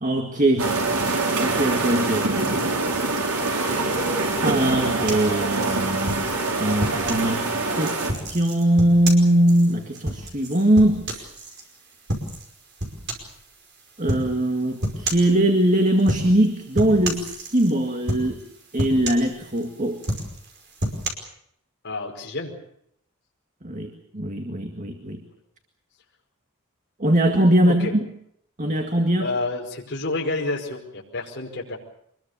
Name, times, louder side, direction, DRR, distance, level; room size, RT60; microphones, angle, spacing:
voice 1, 0.0-0.7 1.4-2.7 4.4-6.3 6.6-7.5 7.7-11.3 14.0-18.5 18.7-20.0 23.6-25.2 27.0-27.9 28.6-29.3, right 1 dB, 35° right, 5 dB, 2.0 m, -21 dB
sound 1, 0.6-8.1, right 3 dB, 85° right, 4.9 m, -24 dB
sound 2, 5.1-7.3 7.8-11.6 12.1-12.5 12.8-13.4 14.1-14.3 14.8-15.3 16.0-16.5 16.8-17.7 18.1-18.5 18.8-19.6 20.0-21.1, right 1 dB, 50° right, 5.1 m, -29 dB
voice 2, 21.8-22.5 27.7-27.9 29.2-31.8, left 2 dB, 50° left, -2 dB, 5.2 m, -29 dB
26.0 x 21.5 x 6.9 m, 0.71 s
head